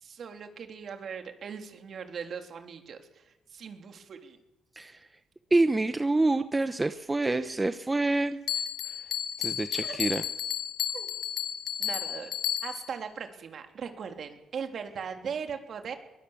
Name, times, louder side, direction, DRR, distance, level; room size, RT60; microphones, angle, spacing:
voice 1, 0.0-4.4 7.2-7.7 8.1-8.2 9.8-10.0 10.9-11.1 11.8-12.3 12.6-16.0, right 6 dB, 55° right, 5 dB, 3.3 m, -39 dB
voice 2, 5.5-8.4 9.4-10.2, right 2 dB, 15° right, 10 dB, 0.9 m, -26 dB
Bell, 8.5-13.0, left 9 dB, 75° left, 1.3 m, -32 dB
22.5 x 20.0 x 7.3 m, 0.98 s
cardioid pair, 90°, 0 cm